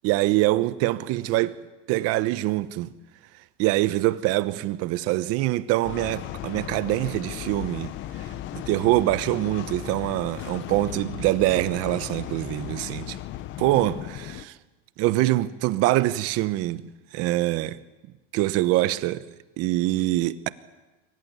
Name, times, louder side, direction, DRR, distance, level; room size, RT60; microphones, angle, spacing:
voice 1, 0.0-1.6 1.9-2.9 3.6-7.9 8.5-13.2 13.6-14.6 15.0-17.8 18.3-19.2 19.6-20.5, right 17 dB, 50° right, 1.0 m, -24 dB
sound 1, 5.8-14.4, left 13 dB, 40° left, 0.9 m, -36 dB
24.0 x 15.0 x 9.6 m
supercardioid pair, 145°, 30 cm